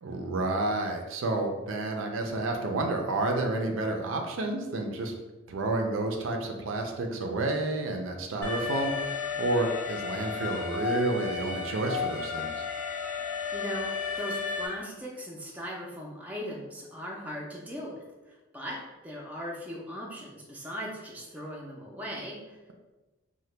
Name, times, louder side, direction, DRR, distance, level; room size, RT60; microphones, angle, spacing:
voice 1, 0.0-5.1 5.5-12.5, right 2 dB, 70° right, 3 dB, 0.4 m, -30 dB
Alarm, 8.4-14.7, left 6 dB, 75° left, 0.6 m, -33 dB
voice 2, 13.5-22.6, equal, 5° right, -3 dB, 0.4 m, -39 dB
2.8 x 2.1 x 3.2 m, 1.1 s
head